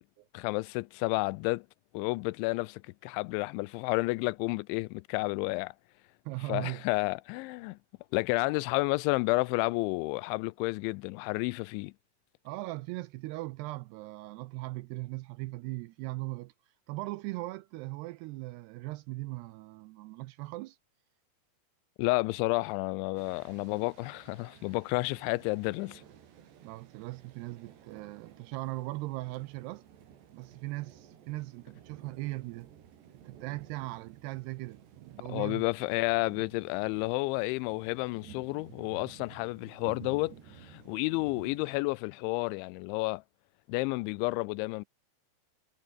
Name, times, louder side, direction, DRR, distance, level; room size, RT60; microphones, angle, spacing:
voice 1, 0.3-1.7 1.9-5.7 6.5-7.8 8.1-11.9 22.0-26.0 35.3-43.2 43.7-44.9, left 24 dB, 90° left, 2.9 m, -31 dB
voice 2, 6.3-6.8 12.5-16.5 16.9-20.8 26.6-29.9 30.3-32.7 33.2-35.6, right 20 dB, 85° right, 2.4 m, -39 dB
sound 1, 23.2-41.8, right 9 dB, 70° right, 4.9 m, -54 dB
omnidirectional pair, 5.2 m